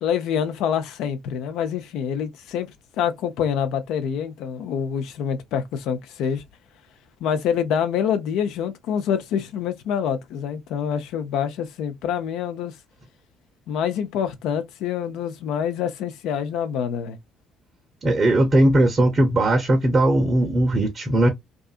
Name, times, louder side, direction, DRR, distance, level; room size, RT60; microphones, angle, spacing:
voice 1, 0.0-2.7 3.0-6.4 7.2-12.7 13.7-17.2, left 8 dB, 65° left, 0.5 m, -26 dB
voice 2, 18.0-21.3, right 1 dB, 35° right, 0.6 m, -18 dB
2.5 x 2.4 x 2.3 m
figure-of-eight pair, 50°, 0 cm